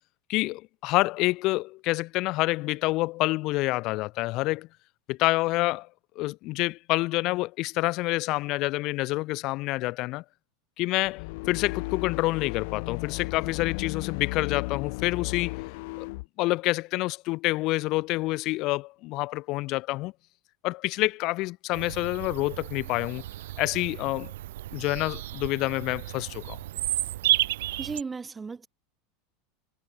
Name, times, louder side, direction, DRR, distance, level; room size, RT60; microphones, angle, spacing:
voice 1, 0.3-4.7 5.1-5.9 6.1-10.2 10.8-15.5 16.0-16.1 16.4-20.1 20.6-23.2 23.6-24.3 24.7-26.6, left 20 dB, 45° left, 5.1 m, -27 dB
sound 1, 11.0-16.3, left 26 dB, 60° left, 5.2 m, -35 dB
Bird vocalization bird call bird song, 21.7-28.0, right 15 dB, 85° right, 1.2 m, -32 dB
voice 2, 27.8-28.7, right 4 dB, 15° right, 3.7 m, -35 dB
supercardioid pair, 145°, 0 cm